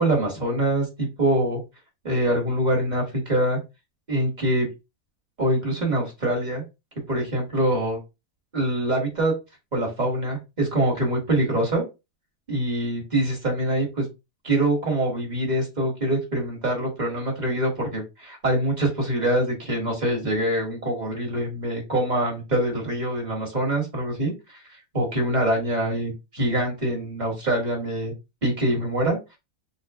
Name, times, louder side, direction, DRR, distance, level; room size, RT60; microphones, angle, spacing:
voice 1, 0.0-1.6 2.0-3.6 4.1-4.7 5.4-6.6 7.1-8.0 8.5-9.3 9.7-11.8 12.5-14.1 14.4-24.6 24.9-28.1 28.4-29.2, right 1 dB, 25° right, 0 dB, 1.5 m, -24 dB
3.8 x 2.4 x 3.5 m, 0.25 s
omnidirectional pair, 1.8 m